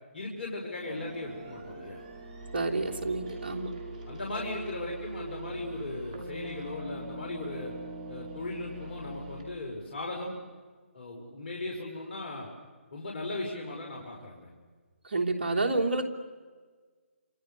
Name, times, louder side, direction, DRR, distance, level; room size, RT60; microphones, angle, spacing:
voice 1, 0.1-2.0 4.1-7.7 8.1-10.4 10.9-12.5 12.9-14.5, left 2 dB, 55° left, 0 dB, 5.1 m, -37 dB
sound 1, 0.8-9.4, right 2 dB, 30° right, 6.9 m, -42 dB
voice 2, 2.5-3.7 15.1-16.0, right 2 dB, 55° right, 3 dB, 3.4 m, -29 dB
29.5 x 27.5 x 6.8 m, 1.5 s
figure-of-eight pair, 150°, 7 cm